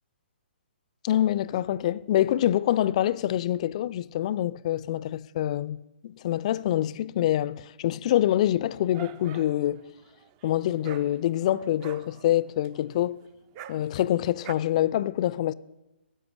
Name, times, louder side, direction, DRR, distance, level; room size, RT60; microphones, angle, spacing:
voice 1, 1.0-5.8 6.0-9.8 10.4-13.2 13.7-15.5, left 12 dB, 35° left, 0.4 m, -25 dB
Dog, 8.5-14.5, right 11 dB, 25° right, 0.4 m, -47 dB
13.5 x 7.8 x 9.3 m
figure-of-eight pair, 130°, 6 cm